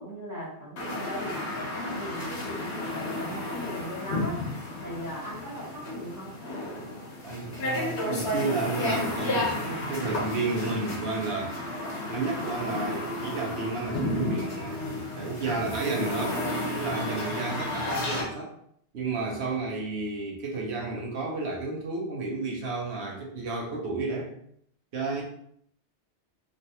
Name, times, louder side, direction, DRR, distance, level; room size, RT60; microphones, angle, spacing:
voice 1, 0.0-6.4, equal, 15° left, -8 dB, 1.1 m, -38 dB
sound 1, 0.8-18.2, left 1 dB, 65° left, 1.2 m, -32 dB
voice 2, 7.2-11.5 12.1-16.4 16.7-18.5 18.9-24.3 24.9-25.2, right 3 dB, 70° right, -1 dB, 1.1 m, -32 dB
3.2 x 2.5 x 2.8 m, 0.67 s
omnidirectional pair, 1.2 m